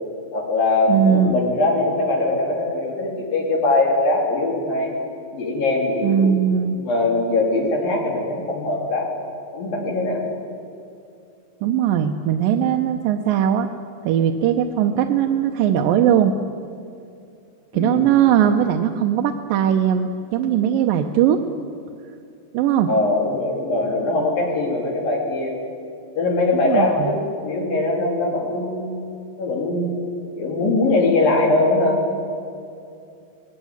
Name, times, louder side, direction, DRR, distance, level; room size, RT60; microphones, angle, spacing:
voice 1, 0.3-4.9 5.3-6.3 6.8-9.1 9.5-10.2 17.7-18.1 22.9-25.5 26.2-29.0 29.4-30.0 30.4-32.0, left 2 dB, 80° left, 0 dB, 5.2 m, -21 dB
voice 2, 0.9-1.4 6.0-6.8 11.6-13.7 14.0-16.3 17.7-21.4 22.5-22.9 26.6-27.1, right 9 dB, 85° right, 4 dB, 2.5 m, -19 dB
20.0 x 16.5 x 9.7 m, 2.6 s
omnidirectional pair, 4.0 m